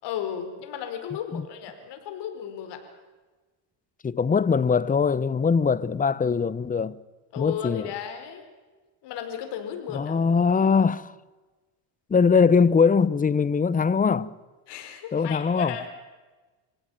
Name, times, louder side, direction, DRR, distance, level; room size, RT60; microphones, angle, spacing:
voice 1, 0.0-2.8 7.3-8.4 9.0-10.1 14.7-15.9, left 9 dB, 65° left, 4.9 m, -34 dB
voice 2, 4.0-7.0 7.4-7.9 9.9-11.1 12.1-14.3 15.1-15.8, left 5 dB, 20° left, 0.8 m, -21 dB
26.0 x 17.0 x 9.4 m
supercardioid pair, 100°, 43 cm